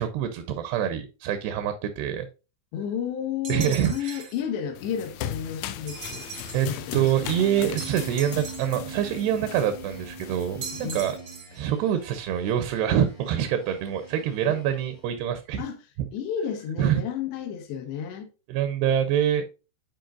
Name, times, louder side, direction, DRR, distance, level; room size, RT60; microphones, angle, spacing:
voice 1, 0.0-2.3 3.5-4.2 6.5-11.2 11.5-15.6 16.0-16.1 16.8-17.0 18.5-19.5, right 10 dB, 80° right, 2.6 m, -25 dB
voice 2, 2.7-6.2 6.6-7.1 10.8-11.0 14.5-14.6 15.6-15.8 16.1-18.3, left 8 dB, 75° left, 3.2 m, -32 dB
sound 1, 3.4-4.4 5.9-6.7 7.8-8.9 10.6-11.6, right 6 dB, 60° right, 1.4 m, -39 dB
sound 2, 4.4-15.3, right 1 dB, 30° left, 1.1 m, -44 dB
sound 3, 4.8-11.2, left 11 dB, 90° left, 2.9 m, -38 dB
10.5 x 4.5 x 2.5 m
omnidirectional pair, 5.2 m